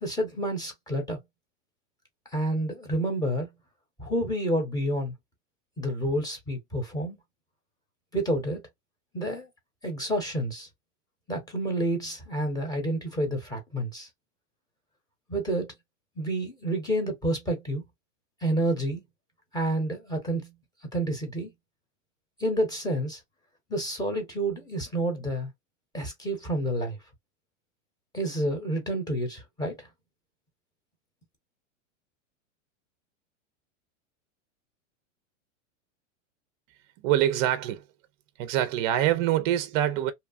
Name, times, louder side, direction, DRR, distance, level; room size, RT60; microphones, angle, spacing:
voice 1, 0.0-1.2 2.3-3.5 4.0-5.1 5.8-7.2 8.1-8.6 9.1-9.5 9.8-10.7 11.3-14.1 15.3-15.7 16.2-17.8 18.4-19.0 19.5-20.5 20.9-21.5 22.4-23.2 23.7-25.5 25.9-27.0 28.1-29.8, right 1 dB, 10° left, 1.0 m, -29 dB
voice 2, 37.0-37.8 38.4-40.1, right 12 dB, 35° right, 0.5 m, -25 dB
2.8 x 2.3 x 2.4 m
supercardioid pair, 145°, 39 cm